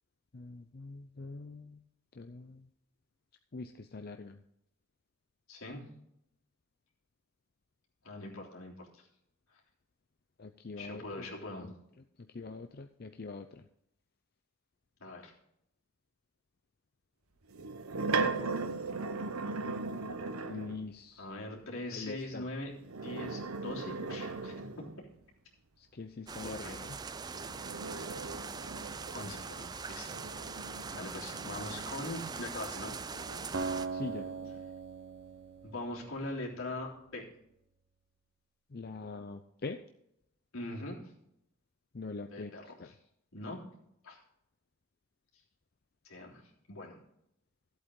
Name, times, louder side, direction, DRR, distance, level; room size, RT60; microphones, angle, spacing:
voice 1, 0.3-1.8 2.1-2.7 3.5-4.4 10.4-11.3 11.6-11.7 12.2-13.7 20.5-21.3 21.9-22.5 25.8-27.0 33.9-34.3 38.7-39.8 41.9-42.9, left 3 dB, 45° left, 7 dB, 0.6 m, -43 dB
voice 2, 5.5-5.8 8.0-9.0 9.5-9.6 10.8-11.7 15.0-15.3 21.2-22.7 23.0-25.1 26.4-26.8 29.1-30.1 30.9-33.0 35.6-37.3 40.5-41.1 42.3-42.7 43.3-43.6 44.0-44.2 46.0-46.4 46.7-47.0, left 2 dB, 75° left, -3 dB, 3.4 m, -42 dB
sound 1, 17.5-20.8 22.8-25.1 27.1-32.3 32.8-34.6, right 4 dB, 85° right, 0.9 m, -38 dB
sound 2, 26.3-33.9, right 5 dB, 20° right, 0.4 m, -42 dB
Acoustic guitar, 33.5-36.7, right 4 dB, 55° right, 0.9 m, -40 dB
14.0 x 8.2 x 3.8 m, 0.77 s
head